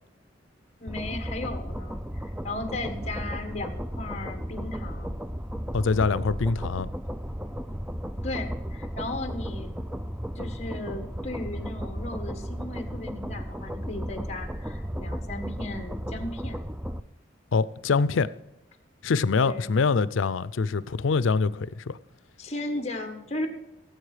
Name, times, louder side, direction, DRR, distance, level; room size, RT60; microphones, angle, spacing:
voice 1, 0.8-5.2 8.2-9.7 10.3-16.6 19.4-19.7 22.4-23.5, left 2 dB, 35° left, 1.4 m, -36 dB
sound 1, 0.9-17.0, equal, 5° right, 0.4 m, -34 dB
voice 2, 5.7-6.9 17.5-18.3 19.0-22.0, left 4 dB, 85° left, 0.5 m, -24 dB
17.0 x 7.9 x 4.9 m
head